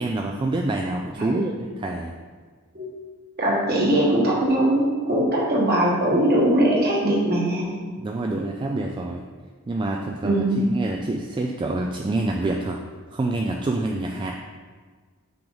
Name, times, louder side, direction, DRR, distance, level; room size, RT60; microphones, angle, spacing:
voice 1, 0.0-2.1 8.0-9.2 9.7-12.8 13.1-14.3, right 2 dB, 20° right, 1 dB, 0.3 m, -27 dB
voice 2, 3.4-7.9 10.2-10.7, right 1 dB, 45° right, -4 dB, 1.4 m, -21 dB
5.8 x 5.1 x 3.9 m, 1.5 s
head